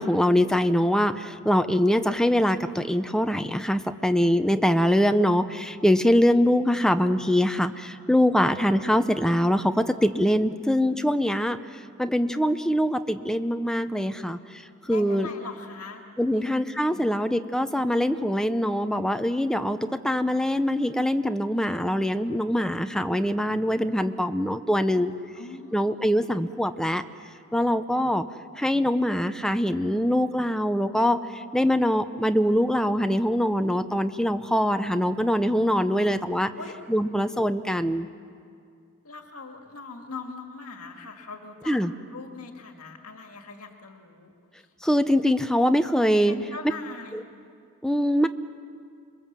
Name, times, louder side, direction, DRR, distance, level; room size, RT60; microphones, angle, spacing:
voice 1, 0.0-11.6 12.0-14.4 14.9-15.3 16.2-25.1 25.7-27.0 27.5-28.2 28.6-31.2 31.5-36.5 36.9-38.1 41.7-41.9 44.8-46.4 47.8-48.3, equal, 5° left, 8 dB, 0.7 m, -23 dB
voice 2, 14.9-16.0 16.3-16.5 16.9-17.2 25.3-26.1 35.9-36.1 36.5-36.8 39.0-41.8 42.1-44.7 46.3-47.3, left 4 dB, 75° left, 4 dB, 2.0 m, -41 dB
27.5 x 22.0 x 7.5 m, 2.3 s
head